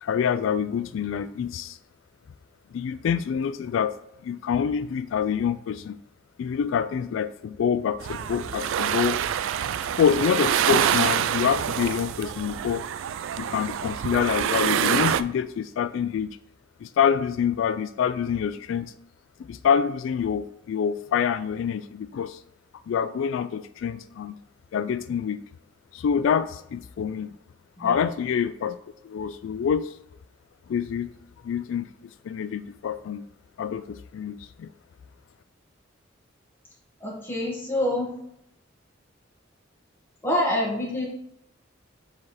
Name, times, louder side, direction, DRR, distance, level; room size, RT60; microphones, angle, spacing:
voice 1, 0.0-1.8 2.7-4.0 4.2-6.0 6.4-9.2 10.0-12.8 13.4-16.3 16.8-18.9 19.5-22.4 22.9-24.3 24.7-25.4 25.9-27.3 27.8-28.8 29.0-29.9 30.7-31.1 31.4-33.2 33.6-34.7, left 7 dB, 85° left, 13 dB, 0.3 m, -26 dB
sound 1, 8.0-15.2, right 9 dB, 85° right, 0.3 m, -26 dB
voice 2, 27.8-28.1 37.0-38.1 40.2-41.0, left 1 dB, 10° left, -4 dB, 1.7 m, -26 dB
4.8 x 4.2 x 4.7 m, 0.75 s
head